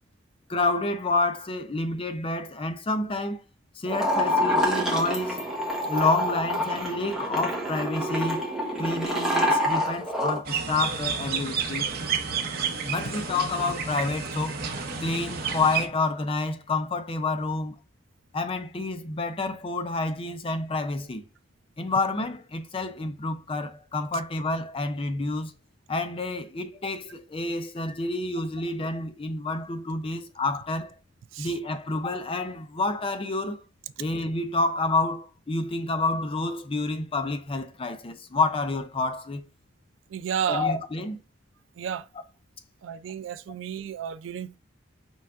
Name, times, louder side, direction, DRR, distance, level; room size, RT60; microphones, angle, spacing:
voice 1, 0.5-3.4 3.8-5.4 5.8-8.5 8.8-11.9 12.9-14.6 15.0-17.8 18.3-21.2 21.8-25.5 25.9-30.9 31.4-33.6 34.0-39.4 40.5-41.2, left 3 dB, 30° left, 0.5 m, -29 dB
sound 1, 3.9-10.4, equal, 5° right, 1.0 m, -27 dB
sound 2, 10.4-15.9, right 6 dB, 55° right, 0.7 m, -30 dB
voice 2, 40.1-40.7 41.8-42.1 42.8-44.6, right 8 dB, 85° right, 0.3 m, -32 dB
5.4 x 3.3 x 2.4 m
head